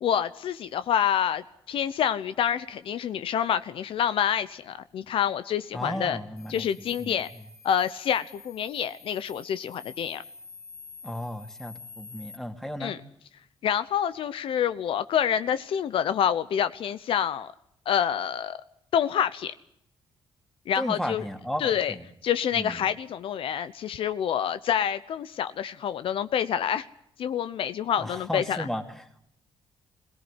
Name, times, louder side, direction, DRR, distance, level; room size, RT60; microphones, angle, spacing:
voice 1, 0.0-6.2 6.5-7.3 7.6-10.2 12.8-13.0 13.6-17.5 17.9-18.6 18.9-19.5 20.7-21.2 21.6-21.9 22.2-26.8 27.2-28.7, left 9 dB, 65° left, 13 dB, 0.9 m, -27 dB
voice 2, 5.7-7.2 11.0-13.0 20.8-22.0 22.5-22.9 28.0-29.2, equal, 5° left, 6 dB, 2.6 m, -34 dB
sound 1, 6.4-12.4, left 4 dB, 30° left, 4.2 m, -48 dB
22.0 x 18.0 x 9.9 m, 0.72 s
cardioid pair, 115°, 10 cm